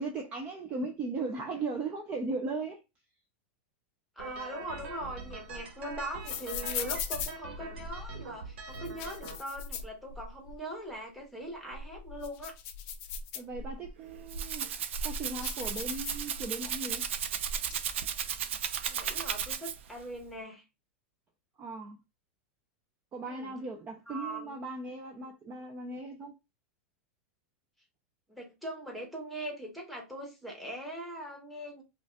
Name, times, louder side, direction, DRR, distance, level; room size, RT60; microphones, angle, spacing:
voice 1, 0.0-2.8 13.3-14.7 15.0-17.1 21.6-22.0 23.1-26.3, right 3 dB, 20° right, 0.5 m, -37 dB
voice 2, 4.2-12.5 18.8-20.6 23.3-23.5 24.1-24.6 28.3-31.8, right 1 dB, ahead, 1.1 m, -41 dB
sound 1, 4.2-9.3, right 3 dB, 75° right, 1.3 m, -43 dB
sound 2, 4.7-8.2 8.7-10.6 10.9-11.0 11.5-13.9 14.5-16.7 16.9-17.7, left 5 dB, 35° left, 0.5 m, -39 dB
Rattle (instrument), 14.0-20.0, right 8 dB, 90° right, 0.5 m, -35 dB
5.2 x 2.4 x 2.2 m
supercardioid pair, 165°, 6 cm